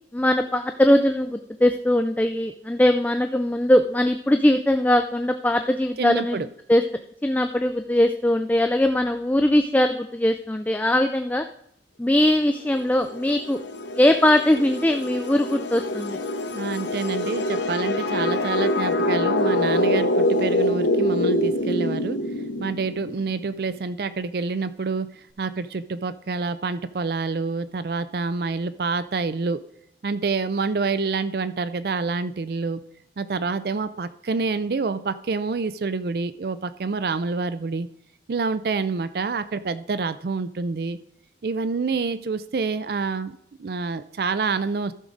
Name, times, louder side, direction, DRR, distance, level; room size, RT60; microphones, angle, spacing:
voice 1, 0.1-6.4 6.7-6.8 7.2-11.4 12.0-13.6 13.9-16.2, left 1 dB, 10° left, 7 dB, 0.3 m, -20 dB
voice 2, 6.0-6.5 16.5-22.2 22.6-25.1 25.4-29.6 30.0-32.8 33.2-37.9 38.3-41.0 41.4-44.9, right 4 dB, 55° right, 14 dB, 0.4 m, -27 dB
sound 1, 12.7-23.2, left 1 dB, 85° left, 0.9 m, -25 dB
14.0 x 6.2 x 3.9 m, 0.75 s
head